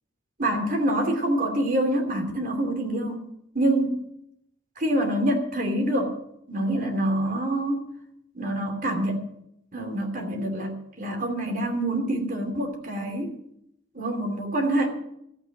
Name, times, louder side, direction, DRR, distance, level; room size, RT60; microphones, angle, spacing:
voice 1, 0.4-3.2 3.5-4.0 4.8-6.2 6.5-7.9 8.3-9.3 9.7-13.3 13.9-14.9, right 1 dB, 40° right, 4 dB, 2.7 m, -26 dB
13.5 x 9.0 x 8.9 m, 0.75 s
head